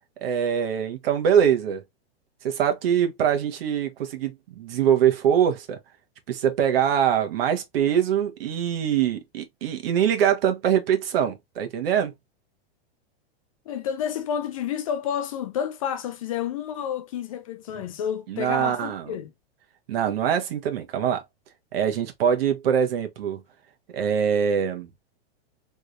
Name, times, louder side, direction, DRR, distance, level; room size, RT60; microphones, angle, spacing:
voice 1, 0.2-1.8 2.4-5.8 6.3-12.1 18.3-19.1 19.9-21.2 21.7-23.4 23.9-24.9, right 8 dB, 65° right, 1.3 m, -23 dB
voice 2, 13.7-19.3, left 8 dB, 35° left, 0.4 m, -30 dB
3.4 x 3.2 x 2.6 m
supercardioid pair, 165°, 32 cm